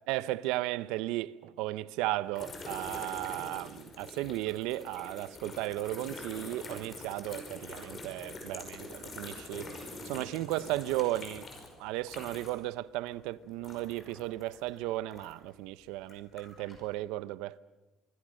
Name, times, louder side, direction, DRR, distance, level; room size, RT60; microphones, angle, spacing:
voice 1, 0.1-9.7 10.0-11.5 11.8-17.6, right 17 dB, 90° right, 0.8 m, -35 dB
sound 1, 2.3-12.7 13.0-15.5 16.0-16.8, left 2 dB, 25° left, 5.3 m, -45 dB
24.5 x 23.5 x 6.5 m
cardioid pair, 155°, 0 cm